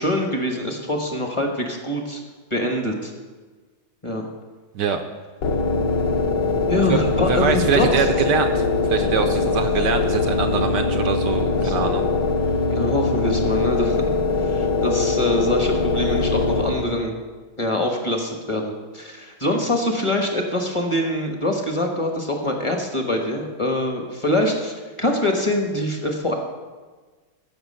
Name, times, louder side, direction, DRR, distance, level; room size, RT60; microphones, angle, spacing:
voice 1, 0.0-2.2 2.5-3.1 4.0-4.2 6.7-8.0 11.5-11.8 12.7-14.1 14.4-17.2 17.6-26.3, left 1 dB, 25° left, 2 dB, 0.7 m, -24 dB
sound 1, 5.4-17.1, left 3 dB, 65° left, 1.6 m, -22 dB
voice 2, 6.9-12.1, right 7 dB, 75° right, 6 dB, 1.0 m, -24 dB
14.0 x 5.7 x 5.6 m, 1.4 s
omnidirectional pair, 2.3 m